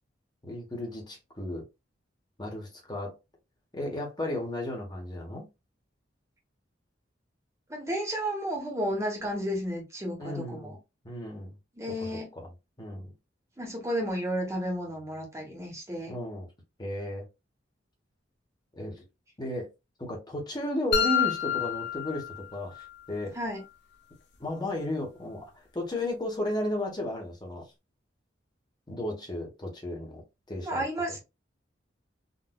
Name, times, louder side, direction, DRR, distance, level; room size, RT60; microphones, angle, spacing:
voice 1, 0.4-1.6 2.4-3.1 3.7-5.4 10.2-10.7 11.0-11.5 12.0-12.1 12.3-12.5 12.8-13.1 16.1-16.5 16.8-17.2 18.8-18.9 19.4-19.7 20.0-23.4 24.4-27.6 28.9-30.2 30.5-30.8, left 1 dB, 25° left, 1.1 m, -34 dB
voice 2, 7.7-10.7 11.8-12.3 13.6-16.1 23.3-23.6 30.6-31.2, equal, 15° right, 1.0 m, -32 dB
sound 1, 20.9-22.9, left 9 dB, 65° left, 0.6 m, -28 dB
3.9 x 2.4 x 2.2 m
head